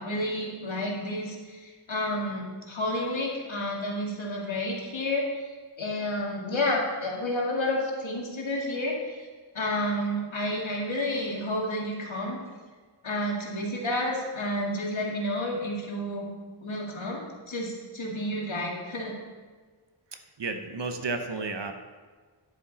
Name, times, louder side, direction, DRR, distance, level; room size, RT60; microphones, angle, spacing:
voice 1, 0.0-5.5 5.8-9.2 9.5-12.4 13.0-16.3 16.6-19.1, left 1 dB, 65° left, -2 dB, 2.1 m, -30 dB
voice 2, 20.1-21.7, right 3 dB, 55° right, 6 dB, 1.0 m, -33 dB
10.5 x 7.4 x 4.0 m, 1.5 s
wide cardioid pair, 80°, 50 cm